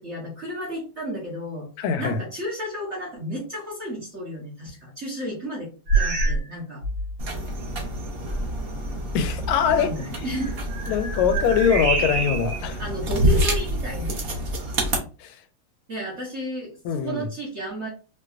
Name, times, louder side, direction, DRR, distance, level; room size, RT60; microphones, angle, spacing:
voice 1, 0.0-1.7 2.0-6.8 9.8-10.6 12.8-14.2 15.9-17.9, equal, 45° right, 0.9 m, -33 dB
voice 2, 1.8-2.2 9.1-9.9 10.2-10.3 10.9-12.8 15.2-15.4 16.8-17.3, left 7 dB, 90° left, 1.4 m, -23 dB
sound 1, 5.9-6.5 6.8-7.1 7.8-7.9 10.3-12.6 13.2-14.2, right 3 dB, 90° right, 2.1 m, -26 dB
sound 2, 7.2-15.0, equal, 75° right, 0.5 m, -28 dB
4.6 x 2.1 x 2.4 m
omnidirectional pair, 2.3 m